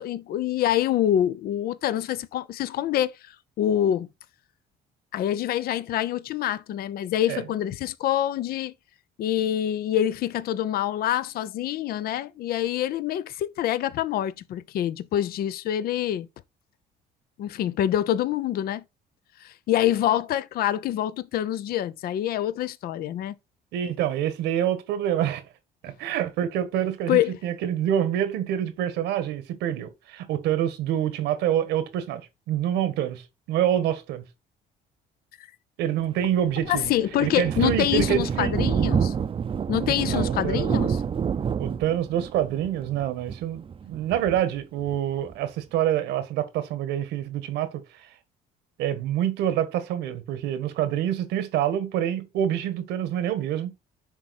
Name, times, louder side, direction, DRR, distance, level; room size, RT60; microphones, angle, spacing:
voice 1, 0.0-4.1 5.1-8.7 9.2-16.3 17.4-18.8 19.4-23.3 27.1-27.3 36.7-39.1 39.7-41.0, left 11 dB, 65° left, 0.6 m, -26 dB
voice 2, 23.7-25.4 25.8-34.2 35.8-36.9 37.2-38.5 40.0-40.7 41.6-47.8 48.8-53.7, right 10 dB, 90° right, 1.5 m, -26 dB
Thunder, 36.2-45.3, right 7 dB, 30° right, 0.6 m, -28 dB
10.0 x 3.7 x 4.2 m
cardioid pair, 110°, 17 cm